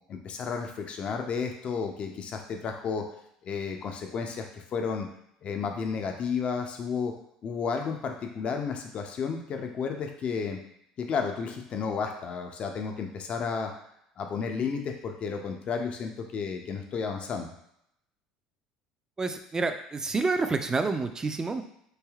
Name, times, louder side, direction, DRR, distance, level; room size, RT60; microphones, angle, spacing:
voice 1, 0.1-3.0 3.4-5.1 5.4-7.1 7.4-10.6 11.0-13.7 14.2-17.5, left 5 dB, 45° left, 3 dB, 0.4 m, -32 dB
voice 2, 19.2-21.6, right 3 dB, 25° right, 7 dB, 0.3 m, -28 dB
3.2 x 2.7 x 2.3 m, 0.74 s
hypercardioid pair, 75°, 3 cm